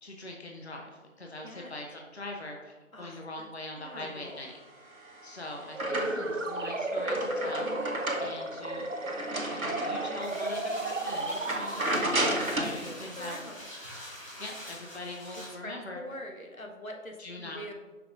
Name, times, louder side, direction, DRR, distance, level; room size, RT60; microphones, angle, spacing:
voice 1, 0.0-4.6 5.2-8.9 9.3-13.4 14.4-16.0 17.2-17.6, left 1 dB, 50° left, 0 dB, 0.9 m, -42 dB
voice 2, 2.9-3.5 3.8-4.4 5.9-6.4 12.8-13.6 15.3-17.7, left 1 dB, 85° left, 2 dB, 1.3 m, -44 dB
sound 1, 4.9-6.4 6.8-10.4 10.9-11.0 11.4-12.8, right 1 dB, 90° right, 1.4 m, -32 dB
sound 2, 5.7-12.2, right 2 dB, 65° right, 0.8 m, -34 dB
sound 3, 10.2-15.5, equal, 25° left, 1.6 m, -45 dB
7.2 x 6.0 x 2.6 m, 1.3 s
figure-of-eight pair, 170°, 41 cm